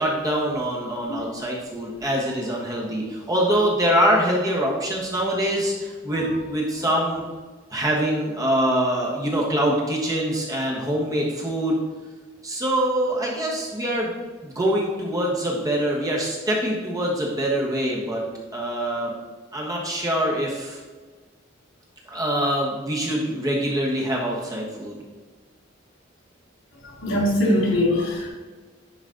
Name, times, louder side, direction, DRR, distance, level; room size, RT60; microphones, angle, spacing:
voice 1, 0.0-7.2 7.7-11.8 12.4-14.1 14.4-18.2 18.5-19.1 19.5-20.8 22.1-25.0, right 1 dB, 20° right, -3 dB, 1.4 m, -24 dB
voice 2, 27.0-28.3, left 1 dB, 85° left, -4 dB, 2.3 m, -21 dB
10.0 x 4.1 x 3.9 m, 1.4 s
head